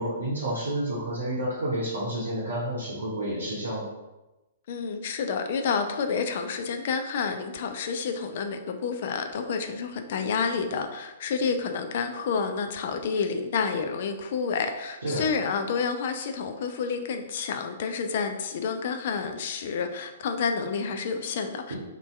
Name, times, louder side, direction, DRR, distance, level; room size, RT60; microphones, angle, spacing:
voice 1, 0.0-3.9 15.0-15.3 21.7-21.8, right 1 dB, 70° right, -8 dB, 0.7 m, -30 dB
voice 2, 4.7-21.8, left 5 dB, 50° left, 6 dB, 0.3 m, -29 dB
2.6 x 2.2 x 3.2 m, 1.0 s
figure-of-eight pair, 115°, 0 cm